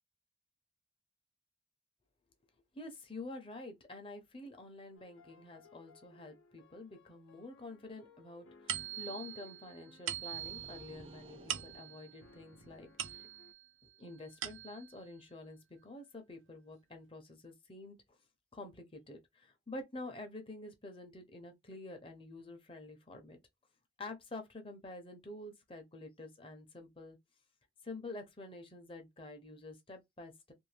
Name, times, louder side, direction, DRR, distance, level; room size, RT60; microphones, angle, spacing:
voice 1, 2.7-13.3 14.0-18.2 18.5-23.4 24.0-27.2 27.8-30.5, left 2 dB, 25° left, 0.7 m, -48 dB
sound 1, 4.9-13.5, left 4 dB, 80° left, 0.8 m, -62 dB
sound 2, 8.7-13.7 14.1-15.0, right 10 dB, 85° right, 0.5 m, -43 dB
sound 3, 10.3-12.8, right 3 dB, 30° right, 0.4 m, -57 dB
2.7 x 2.6 x 3.2 m
head